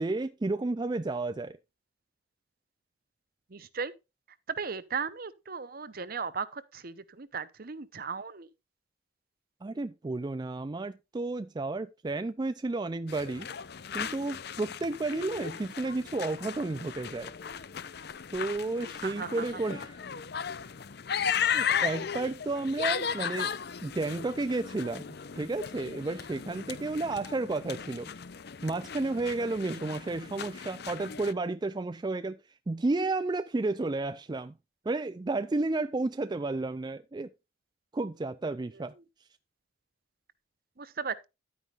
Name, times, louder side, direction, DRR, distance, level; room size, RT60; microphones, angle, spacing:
voice 1, 0.0-1.6 9.6-13.5 13.9-17.3 18.3-20.0 21.5-23.5 23.8-28.1 28.6-32.4 32.7-34.5 34.9-37.3 37.9-38.9, right 2 dB, 25° right, 0.4 m, -32 dB
voice 2, 3.5-3.9 4.5-8.5 19.0-19.4 40.8-41.3, right 5 dB, 50° right, 0.9 m, -36 dB
sound 1, 13.1-31.3, left 7 dB, 60° left, 0.6 m, -36 dB
11.5 x 9.3 x 2.5 m
head